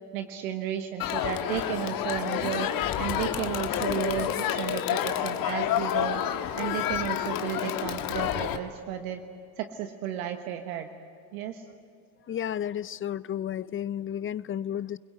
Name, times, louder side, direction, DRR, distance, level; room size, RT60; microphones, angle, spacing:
voice 1, 0.1-2.7 3.0-6.2 6.6-9.2 9.6-10.9 11.3-11.6, right 10 dB, 70° right, 6 dB, 1.4 m, -33 dB
Crowd, 1.0-8.6, left 10 dB, 50° left, 1.6 m, -29 dB
voice 2, 12.3-15.0, left 10 dB, 30° left, 18 dB, 0.7 m, -32 dB
28.5 x 21.5 x 8.0 m, 2.4 s
hypercardioid pair, 65°, 45 cm